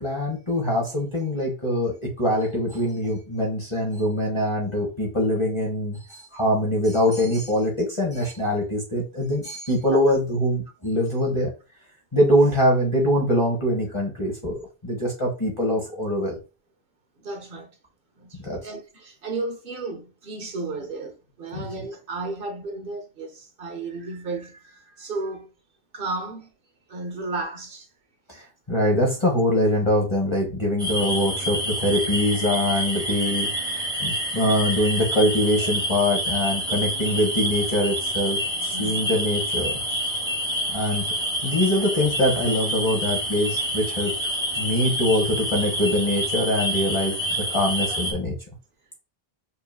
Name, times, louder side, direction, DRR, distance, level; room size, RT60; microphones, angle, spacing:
voice 1, 0.0-11.5 12.1-16.4 18.4-18.7 21.5-21.7 28.3-39.8 40.7-41.0 41.4-44.1 44.6-48.4, left 1 dB, 30° left, 1.2 m, -23 dB
voice 2, 17.2-17.8 18.2-25.5 25.9-26.5 26.9-27.9 38.7-39.0, right 3 dB, 60° right, 1.0 m, -33 dB
sound 1, 30.8-48.1, equal, 5° right, 1.1 m, -28 dB
5.3 x 2.8 x 2.3 m
omnidirectional pair, 1.0 m